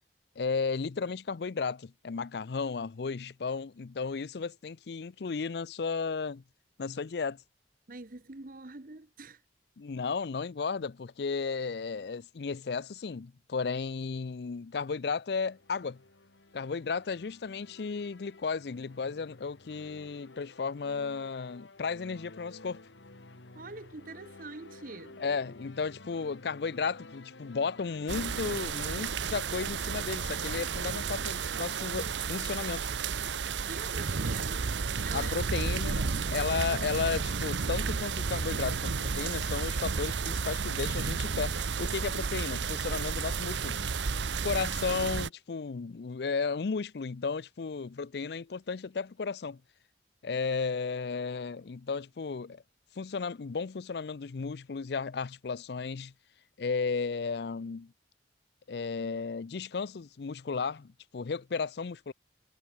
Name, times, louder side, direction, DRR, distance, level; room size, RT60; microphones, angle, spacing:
voice 1, 0.4-6.4 6.8-7.4 9.8-16.0 16.5-22.8 25.2-32.9 35.1-43.9 44.4-49.6 50.2-52.6 53.0-56.1 56.6-57.9 58.7-62.1, left 5 dB, 65° left, 0.5 m, -34 dB
voice 2, 7.9-9.4 23.5-25.2 33.7-34.7 35.0-35.7, right 3 dB, 50° right, 1.1 m, -45 dB
sound 1, 14.7-28.5, left 2 dB, 90° left, 2.1 m, -53 dB
sound 2, 28.1-45.3, right 5 dB, 85° right, 0.8 m, -32 dB
head